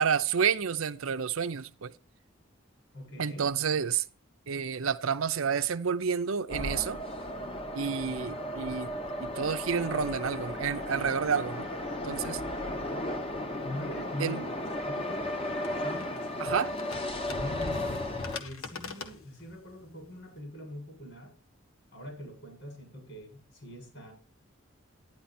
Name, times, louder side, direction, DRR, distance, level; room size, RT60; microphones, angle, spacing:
voice 1, 0.0-1.9 3.2-4.1 4.5-7.0 7.7-8.9 9.2-11.7 12.0-12.4 14.2-14.4 16.4-16.7, right 6 dB, 80° right, 0.6 m, -29 dB
voice 2, 2.9-3.5 12.6-12.9 13.6-14.4 14.8-15.1 15.7-16.6 17.3-18.0 18.4-21.3 21.9-24.1, equal, 65° left, 7.2 m, -43 dB
sound 1, 6.5-18.4, left 1 dB, 25° left, 1.0 m, -35 dB
sound 2, 15.0-20.4, left 4 dB, 90° left, 1.5 m, -45 dB
10.5 x 10.5 x 4.3 m
head